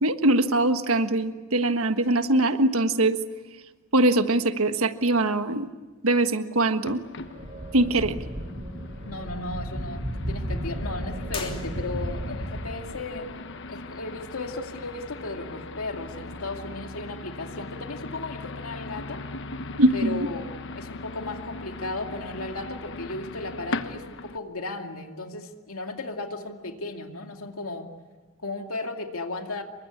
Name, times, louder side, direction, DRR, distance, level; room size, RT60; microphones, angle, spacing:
voice 1, 0.0-3.2 3.9-5.7 6.0-7.0 7.7-8.2 19.8-20.3, right 2 dB, 75° right, 9 dB, 1.5 m, -22 dB
sound 1, 6.8-24.4, left 2 dB, 55° left, 1.3 m, -39 dB
Eerie Ambience, 7.2-13.3, equal, 35° right, 2.7 m, -34 dB
voice 2, 9.0-13.3 13.7-19.2 19.9-27.9 28.4-29.6, left 2 dB, 75° left, 4 dB, 2.5 m, -35 dB
sound 2, 11.3-12.3, left 5 dB, 25° left, 3.1 m, -39 dB
28.0 x 24.0 x 8.6 m, 1.3 s
head